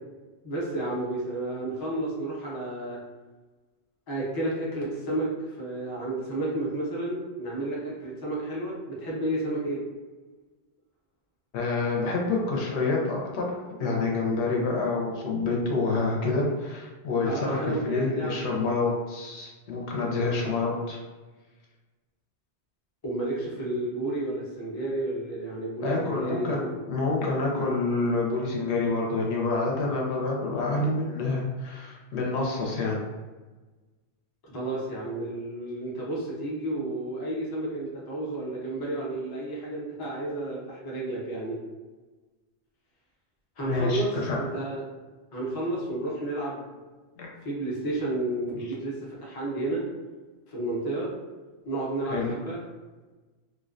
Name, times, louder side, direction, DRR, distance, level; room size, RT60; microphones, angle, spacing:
voice 1, 0.4-3.0 4.1-9.8 17.2-18.5 23.0-26.7 34.4-41.6 43.6-44.8 45.3-46.8 47.4-49.8 50.5-51.1 51.7-52.6, right 2 dB, 30° left, -5 dB, 0.4 m, -31 dB
voice 2, 11.5-21.0 25.8-33.0 43.7-44.4 47.2-47.3 52.1-52.3, left 3 dB, 80° left, -2 dB, 0.9 m, -27 dB
2.4 x 2.1 x 2.4 m, 1.2 s
omnidirectional pair, 1.1 m